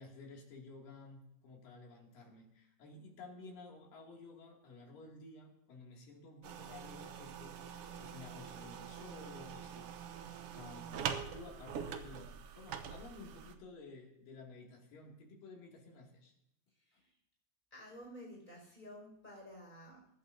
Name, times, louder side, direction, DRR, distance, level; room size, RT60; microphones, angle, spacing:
voice 1, 0.0-9.9 10.5-16.3, left 3 dB, 85° left, -1 dB, 4.1 m, -53 dB
sound 1, 6.4-13.5, right 8 dB, 85° right, 1.3 m, -44 dB
voice 2, 16.8-17.1 17.7-20.1, equal, 15° left, -2 dB, 5.6 m, -52 dB
23.5 x 11.5 x 2.7 m, 0.83 s
omnidirectional pair, 3.8 m